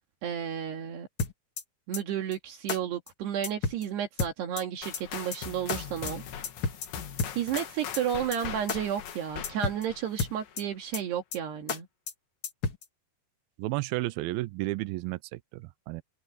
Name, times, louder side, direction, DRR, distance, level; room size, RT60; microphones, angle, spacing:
voice 1, 0.2-1.1 1.9-6.2 7.4-11.9, right 9 dB, 70° right, 4.1 m, -32 dB
sound 1, 1.2-1.6 1.9-2.0 2.3-2.4 2.7-2.8 3.1-3.2 3.4-3.8 4.2-4.6 4.9-5.0 5.3-5.4 5.7-5.8 6.1-6.2 6.4-6.9 7.2-7.6 7.9-8.0 8.3-8.4 8.7-8.8 9.1-9.2 9.4-9.8 10.2-10.6 10.9-11.0 11.3-11.4 11.7-11.8 12.1-12.2 12.4-12.8, left 4 dB, 45° left, 1.8 m, -31 dB
sound 2, 4.8-10.7, left 8 dB, 85° left, 4.6 m, -41 dB
voice 2, 13.6-16.0, right 19 dB, 90° right, 2.1 m, -32 dB
omnidirectional pair, 5.0 m